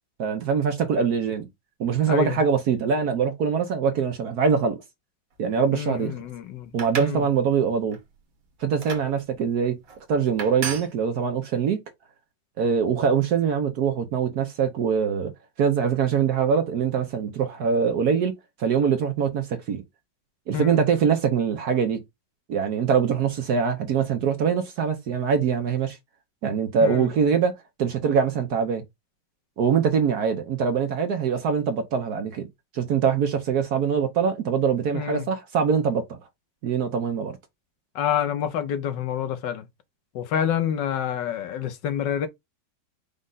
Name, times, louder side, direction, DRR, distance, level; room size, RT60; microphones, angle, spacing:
voice 1, 0.2-1.5 1.8-4.8 5.4-6.1 6.7-8.0 8.6-9.8 10.1-11.8 12.6-15.3 15.6-18.3 18.6-19.8 20.5-22.0 22.5-26.0 26.4-27.5 27.8-28.8 29.6-32.5 32.7-36.2 36.6-37.4, right 6 dB, 60° right, 1.2 m, -23 dB
voice 2, 2.1-2.4 5.7-7.3 20.5-20.8 26.8-27.1 34.9-35.3 37.9-39.7 40.1-42.3, left 9 dB, 70° left, 1.4 m, -28 dB
sound 1, 6.6-7.2 7.7-8.0 8.8-9.1 9.8-10.0 10.4-10.9, right 7 dB, 80° right, 1.9 m, -33 dB
5.3 x 2.3 x 3.8 m
omnidirectional pair, 2.1 m